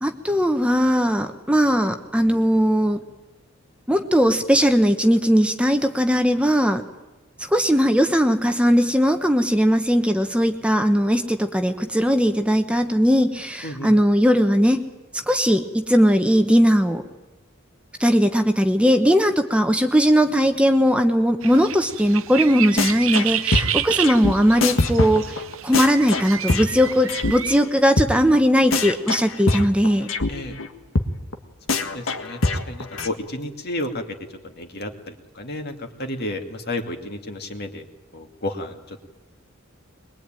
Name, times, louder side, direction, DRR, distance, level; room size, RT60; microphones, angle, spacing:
voice 1, 0.0-3.0 3.9-6.8 7.5-14.8 15.1-17.0 18.0-25.4 25.6-30.1, equal, 5° right, 6 dB, 1.0 m, -19 dB
voice 2, 13.6-13.9 30.3-30.6 31.7-34.0 34.3-37.8 38.1-39.0, left 1 dB, 50° left, 5 dB, 2.5 m, -32 dB
sound 1, 21.4-27.6, right 10 dB, 70° right, 0.8 m, -29 dB
sound 2, 22.8-23.3 23.5-27.3 27.6-27.7 28.0-28.1 28.3-28.4 28.7-30.3 30.6-30.7 31.0-31.1 31.3-31.4 31.7-33.1, left 3 dB, 70° left, 1.7 m, -23 dB
22.5 x 21.5 x 9.1 m, 1.1 s
head